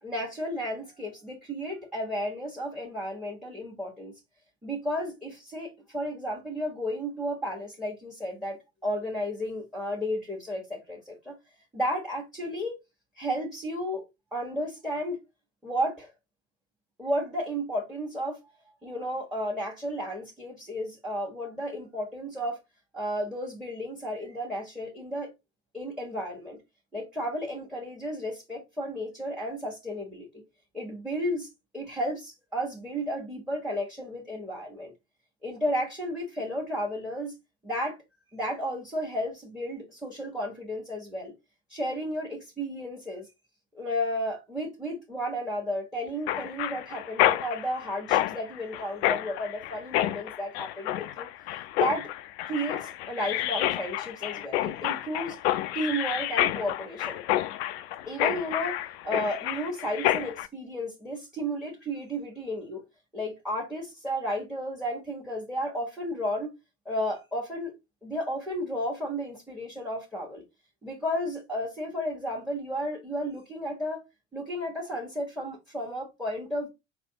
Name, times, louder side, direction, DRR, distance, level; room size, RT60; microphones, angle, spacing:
voice 1, 0.0-4.1 4.6-11.3 11.7-12.8 13.1-14.0 14.3-15.2 15.6-16.1 17.0-18.4 18.8-22.6 22.9-25.3 25.7-26.6 26.9-30.3 30.7-31.5 31.7-34.9 35.4-37.4 37.6-38.0 38.3-41.3 41.7-43.3 43.7-51.3 51.8-52.1 52.4-55.4 55.7-57.2 58.0-58.8 59.0-62.8 63.1-66.5 66.8-67.7 68.0-70.4 70.8-74.0 74.3-76.7, equal, ahead, 1.4 m, -33 dB
Mechanisms, 46.3-60.5, left 14 dB, 55° left, 0.5 m, -29 dB
4.8 x 3.3 x 2.8 m
figure-of-eight pair, 65°, 38 cm